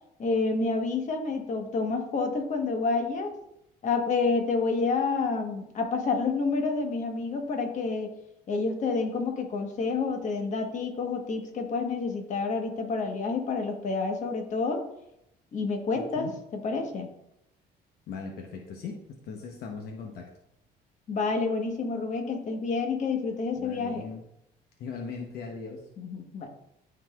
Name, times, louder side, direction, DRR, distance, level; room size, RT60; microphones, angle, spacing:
voice 1, 0.2-3.3 3.8-8.1 8.5-14.8 15.5-16.3 16.5-17.1 21.1-24.0 26.0-26.5, left 4 dB, 45° left, 4 dB, 1.2 m, -29 dB
voice 2, 15.9-16.3 18.1-20.3 23.5-24.2 24.8-25.9, left 5 dB, 70° left, 2 dB, 0.9 m, -39 dB
12.0 x 4.1 x 2.4 m, 0.80 s
cardioid pair, 110°, 17 cm